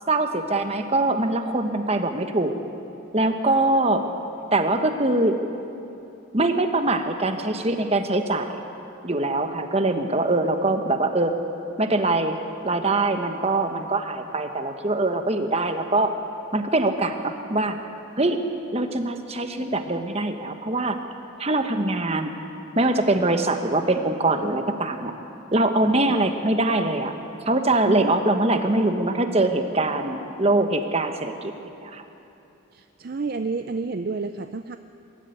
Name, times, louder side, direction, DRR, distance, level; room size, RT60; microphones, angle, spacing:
voice 1, 0.1-2.5 3.1-4.0 4.5-5.4 6.3-8.6 9.0-11.3 11.8-12.4 12.6-16.1 16.5-17.8 18.2-18.4 18.7-21.0 21.4-22.3 22.7-25.1 25.5-27.1 27.5-31.5 31.8-32.0, right 2 dB, 30° right, 7 dB, 1.2 m, -23 dB
voice 2, 27.8-28.1 32.7-34.8, right 4 dB, 45° right, 9 dB, 0.5 m, -30 dB
22.5 x 13.5 x 9.5 m, 2.9 s
head